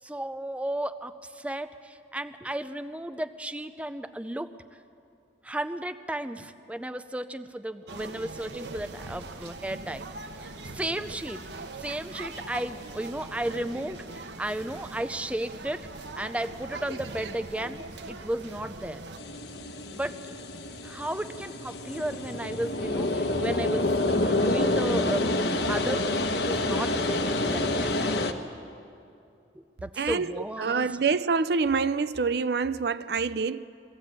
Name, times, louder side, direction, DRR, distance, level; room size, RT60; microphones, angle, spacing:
voice 1, 0.0-4.5 5.4-10.1 10.4-11.4 11.8-15.9 16.1-19.0 19.9-20.2 20.8-25.4 25.7-28.2 29.5-30.9, right 1 dB, 5° right, 0.5 m, -34 dB
sound 1, 7.9-19.2, right 3 dB, 80° right, 1.1 m, -41 dB
sound 2, 19.2-28.3, left 2 dB, 75° left, 1.2 m, -28 dB
voice 2, 30.0-33.6, right 5 dB, 65° right, 0.5 m, -26 dB
22.5 x 15.0 x 8.8 m
head